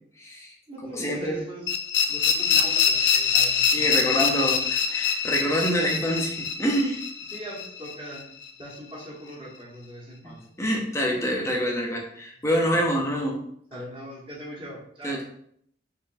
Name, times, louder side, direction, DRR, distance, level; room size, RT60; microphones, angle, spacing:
voice 1, 0.2-0.5 0.9-1.4 3.7-7.0 10.2-10.3 10.6-13.4 15.0-15.2, equal, 15° left, 0 dB, 0.6 m, -26 dB
voice 2, 0.7-1.7 2.0-4.6 5.0-5.1 7.3-8.3 8.6-10.4 12.7-12.8 13.7-15.2, right 1 dB, 25° right, -5 dB, 1.2 m, -40 dB
sound 1, 1.7-8.5, left 6 dB, 65° left, 0.4 m, -24 dB
3.9 x 3.2 x 2.6 m, 0.67 s
head